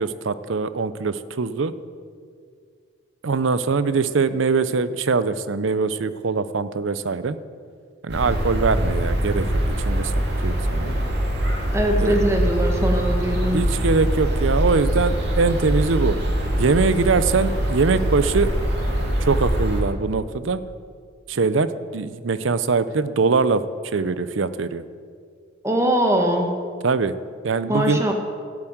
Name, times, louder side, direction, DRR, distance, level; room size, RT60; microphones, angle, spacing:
voice 1, 0.0-1.7 3.2-7.4 8.0-10.1 10.4-10.9 12.0-12.2 13.5-16.2 16.6-18.5 19.2-20.6 21.3-23.6 23.9-24.8 26.8-27.1 27.4-28.0, right 4 dB, 80° right, 14 dB, 0.6 m, -22 dB
sound 1, 8.1-19.8, equal, 55° right, 2.4 m, -23 dB
voice 2, 11.7-13.6 25.6-26.5 27.7-28.1, equal, 15° right, 2 dB, 1.5 m, -21 dB
12.5 x 7.2 x 9.2 m, 2.1 s
head